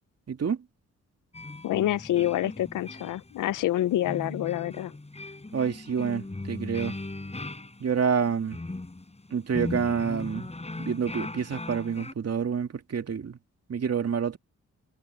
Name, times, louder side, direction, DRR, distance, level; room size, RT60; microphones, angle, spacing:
voice 1, 0.3-0.6 5.5-6.9 7.8-8.6 9.3-10.5 10.8-13.4 13.7-14.4, right 6 dB, 55° right, 2.3 m, -28 dB
sound 1, 1.3-12.1, left 2 dB, 20° left, 5.9 m, -38 dB
voice 2, 1.6-4.9, left 13 dB, 90° left, 0.6 m, -27 dB
cardioid pair, 75°, 30 cm